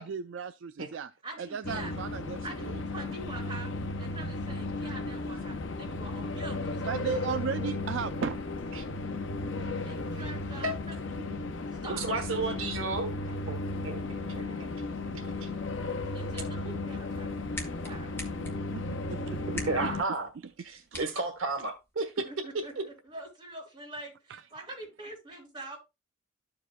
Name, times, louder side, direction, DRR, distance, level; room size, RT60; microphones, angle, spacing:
voice 1, 0.0-1.1 1.4-2.8 6.8-8.4 18.4-19.9 20.9-21.2 24.3-24.4, right 6 dB, 65° right, 0.3 m, -36 dB
voice 2, 1.2-1.9 2.4-3.7 4.0-7.4 9.8-11.0 11.7-12.1 16.1-17.3 17.8-18.1 22.2-25.8, right 2 dB, 25° right, 3.6 m, -44 dB
sound 1, 1.6-20.0, left 2 dB, 70° left, 0.7 m, -35 dB
voice 3, 11.9-13.1 13.5-13.6 13.8-14.7 15.4-15.5 19.7-20.3 20.6-22.1, right 3 dB, 85° right, 1.3 m, -32 dB
sound 2, 16.0-21.9, left 1 dB, 10° left, 1.3 m, -46 dB
13.0 x 4.8 x 2.2 m
head